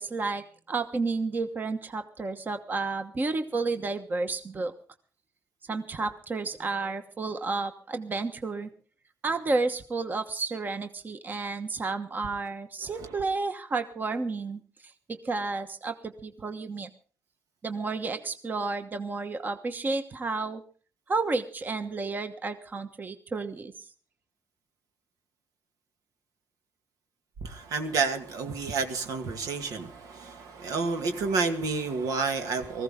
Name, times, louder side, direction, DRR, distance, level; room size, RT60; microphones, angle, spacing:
voice 1, 0.0-4.7 5.7-8.7 9.2-14.6 15.1-16.9 17.6-20.6 21.1-23.7, right 3 dB, 30° right, 1.2 m, -31 dB
voice 2, 27.4-32.8, right 4 dB, 80° right, 2.1 m, -30 dB
19.5 x 15.5 x 3.7 m
cardioid pair, 120°, 6 cm